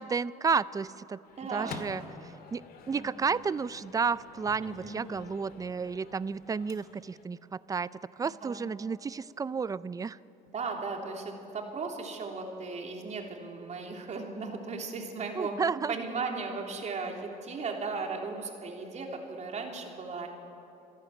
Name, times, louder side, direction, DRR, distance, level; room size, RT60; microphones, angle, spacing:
voice 1, 0.0-1.2 1.5-7.9 8.2-10.2 15.4-16.0, right 5 dB, 20° right, 19 dB, 0.4 m, -32 dB
Microwave oven, 1.2-7.2, left 5 dB, 60° left, 2.0 m, -48 dB
voice 2, 1.4-1.8 2.9-3.1 4.6-5.0 8.4-8.6 10.5-20.3, right 4 dB, 45° right, 2 dB, 3.3 m, -36 dB
26.5 x 11.0 x 9.1 m, 2.8 s
cardioid pair, 110°, 17 cm